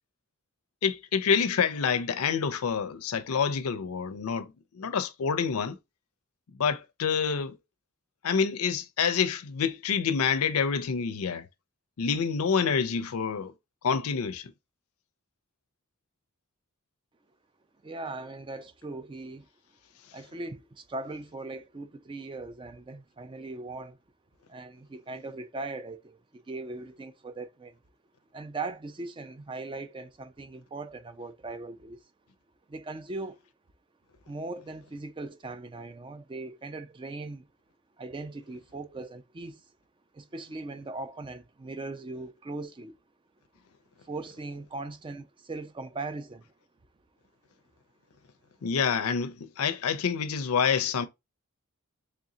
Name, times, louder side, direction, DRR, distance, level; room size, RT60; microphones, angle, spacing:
voice 1, 0.8-5.8 6.6-7.6 8.2-11.5 12.0-13.5 13.8-14.5 48.6-51.1, left 6 dB, 80° left, 0.5 m, -27 dB
voice 2, 17.8-19.5 20.1-24.0 24.5-27.8 28.3-32.0 32.7-33.4 34.3-37.5 38.0-39.7 40.1-43.0 44.0-46.5, right 3 dB, 20° right, 0.4 m, -39 dB
3.7 x 3.4 x 2.7 m
head